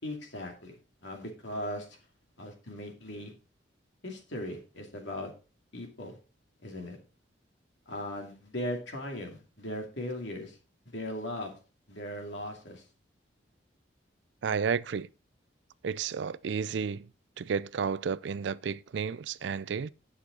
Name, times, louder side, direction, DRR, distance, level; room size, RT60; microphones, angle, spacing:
voice 1, 0.0-2.0 2.4-3.3 4.0-5.3 5.7-6.2 6.6-7.0 7.9-10.6 10.9-11.6 11.9-12.8, left 1 dB, 70° left, 2.5 m, -38 dB
voice 2, 14.4-15.1 15.8-17.1 17.4-19.9, right 6 dB, 70° right, 0.4 m, -32 dB
10.5 x 6.3 x 4.0 m
head